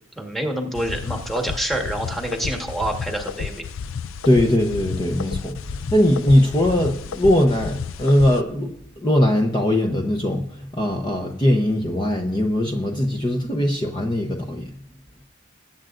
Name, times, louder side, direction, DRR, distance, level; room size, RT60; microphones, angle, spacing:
voice 1, 0.2-3.6, right 1 dB, ahead, 2 dB, 1.6 m, -27 dB
sound 1, 0.8-8.4, left 6 dB, 90° left, 0.4 m, -32 dB
voice 2, 4.2-5.6 5.9-8.7 9.0-10.4 10.7-14.6, left 1 dB, 25° left, 2 dB, 0.9 m, -20 dB
21.5 x 8.9 x 2.6 m, 0.75 s
head